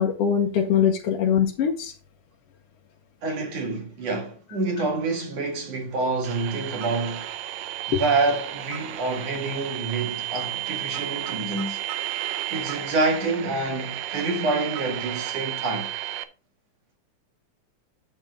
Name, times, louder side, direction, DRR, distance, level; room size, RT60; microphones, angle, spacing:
voice 1, 0.0-1.9 7.9-8.0, left 8 dB, 65° left, 1.7 m, -22 dB
voice 2, 3.2-7.3 7.9-11.8 12.5-15.9, right 3 dB, 55° right, 3.3 m, -27 dB
sound 1, 6.2-16.2, right 14 dB, 75° right, 1.7 m, -33 dB
9.0 x 7.1 x 3.5 m
omnidirectional pair, 3.5 m